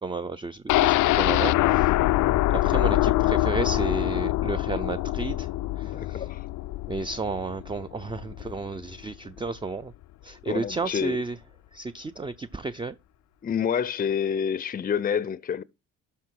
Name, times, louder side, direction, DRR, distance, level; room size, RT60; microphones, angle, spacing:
voice 1, 0.0-1.9 2.5-5.5 5.8-6.2 6.9-9.9 10.2-11.4 11.7-12.9, right 3 dB, 15° right, 0.5 m, -32 dB
sound 1, 0.7-8.6 8.9-9.0 9.4-9.5, left 16 dB, 80° left, 0.5 m, -24 dB
voice 2, 5.8-6.5 10.5-11.2 13.4-15.6, left 7 dB, 30° left, 0.5 m, -28 dB
12.5 x 4.7 x 4.6 m
cardioid pair, 90°, 30 cm